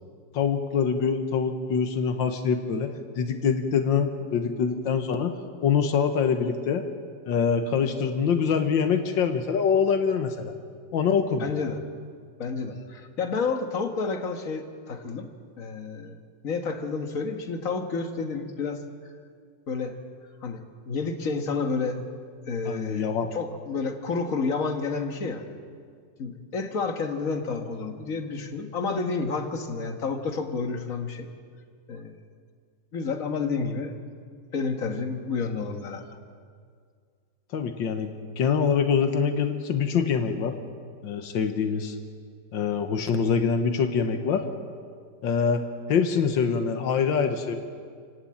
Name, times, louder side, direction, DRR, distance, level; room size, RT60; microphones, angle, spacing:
voice 1, 0.3-5.3 5.6-6.9 7.3-10.5 10.9-11.5 22.7-23.3 37.5-40.5 41.0-42.0 42.5-44.4 45.2-45.6 45.9-47.6, left 6 dB, 85° left, 6 dB, 1.9 m, -24 dB
voice 2, 11.4-11.8 12.4-15.3 15.6-16.2 16.4-18.8 19.7-19.9 20.4-22.0 22.5-25.4 26.2-31.3 31.9-32.2 32.9-33.9 34.5-36.1, left 4 dB, 50° left, 5 dB, 1.8 m, -30 dB
29.0 x 11.5 x 8.8 m, 2.1 s
omnidirectional pair, 2.0 m